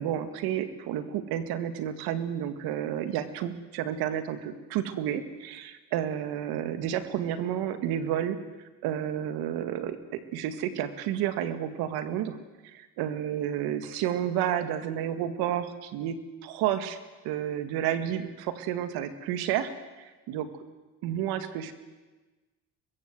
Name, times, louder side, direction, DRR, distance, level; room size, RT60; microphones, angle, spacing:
voice 1, 0.0-8.4 8.8-10.0 10.3-12.4 12.6-16.2 16.4-17.0 17.2-19.7 20.0-20.5 21.0-21.7, right 10 dB, 85° right, 10 dB, 2.1 m, -31 dB
24.0 x 21.5 x 7.9 m, 1.2 s
supercardioid pair, 90°, 37 cm